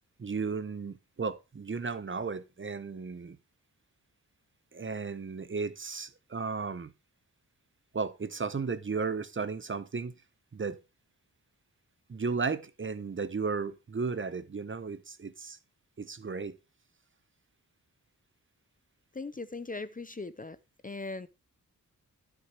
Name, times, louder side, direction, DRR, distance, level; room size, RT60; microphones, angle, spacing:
voice 1, 0.2-3.4 4.7-6.9 7.9-10.1 10.5-10.8 12.1-15.6 16.0-16.6, right 4 dB, 35° right, 0.8 m, -34 dB
voice 2, 19.1-20.6 20.8-21.3, left 3 dB, 25° left, 0.6 m, -39 dB
11.0 x 6.2 x 4.7 m
wide cardioid pair, 105°, 35 cm